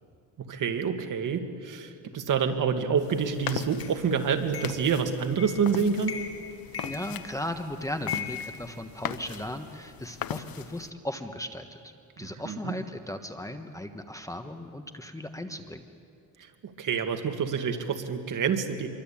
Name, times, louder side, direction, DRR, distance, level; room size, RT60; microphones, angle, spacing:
voice 1, 0.5-6.2 12.2-12.7 16.4-18.9, right 6 dB, 55° right, 6 dB, 2.2 m, -28 dB
sound 1, 3.0-10.9, left 10 dB, 65° left, 1.1 m, -40 dB
sound 2, 3.8-3.9 4.5-4.9 5.4-5.7 6.0-6.4 6.7-7.6 8.1-9.3, left 8 dB, 35° left, 4.0 m, -38 dB
voice 2, 6.8-15.8, left 1 dB, 10° left, 7 dB, 1.3 m, -37 dB
25.5 x 24.0 x 8.7 m, 2.3 s
cardioid pair, 120°, 38 cm